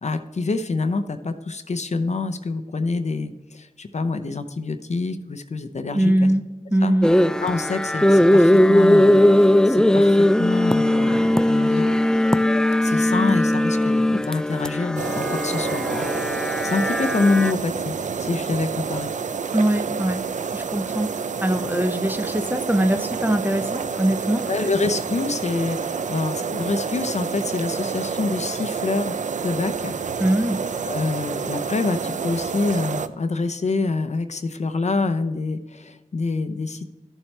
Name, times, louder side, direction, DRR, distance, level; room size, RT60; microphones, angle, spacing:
voice 1, 0.0-6.3 6.8-6.9 7.4-11.9 12.8-17.9 18.2-19.1 24.5-29.1 29.4-29.9 30.8-36.9, left 3 dB, 55° left, 9 dB, 0.7 m, -26 dB
voice 2, 5.9-6.5 6.7-7.1 19.5-20.2 20.5-21.1 21.4-24.5 30.2-30.6, right 1 dB, 15° right, 8 dB, 0.8 m, -22 dB
sound 1, 7.0-17.5, left 1 dB, 5° left, 0.3 m, -18 dB
sound 2, 15.0-33.1, right 6 dB, 65° right, 0.5 m, -28 dB
13.0 x 7.2 x 3.3 m, 1.1 s
wide cardioid pair, 60°, 14 cm